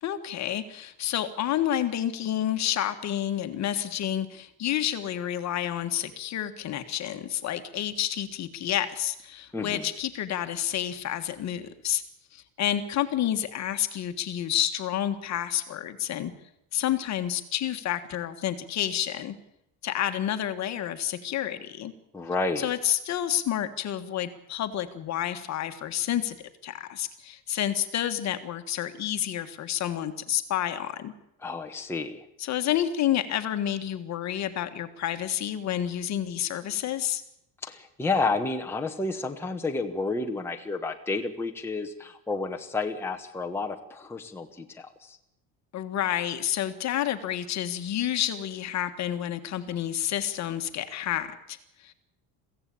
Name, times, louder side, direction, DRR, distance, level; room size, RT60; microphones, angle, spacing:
voice 1, 0.0-12.0 12.3-16.3 16.7-19.3 19.8-21.9 22.6-26.4 26.6-31.1 32.4-37.2 45.7-51.9, left 11 dB, 40° left, 8 dB, 1.7 m, -29 dB
voice 2, 9.5-9.9 22.1-22.7 31.4-32.2 37.6-45.2, left 3 dB, 5° left, 2 dB, 1.3 m, -31 dB
23.0 x 16.0 x 8.6 m, 0.80 s
cardioid pair, 160°, 40 cm